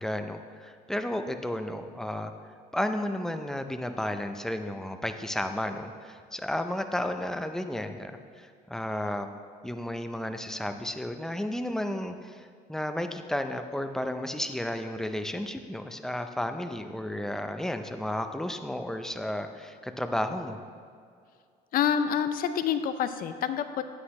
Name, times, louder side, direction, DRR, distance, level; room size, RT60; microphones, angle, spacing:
voice 1, 0.0-2.3 2.7-9.3 9.6-20.6, left 1 dB, 5° left, 7 dB, 0.5 m, -33 dB
voice 2, 21.7-23.8, left 8 dB, 60° left, 10 dB, 0.5 m, -27 dB
9.4 x 8.7 x 3.2 m, 2.2 s
cardioid pair, 110°, 17 cm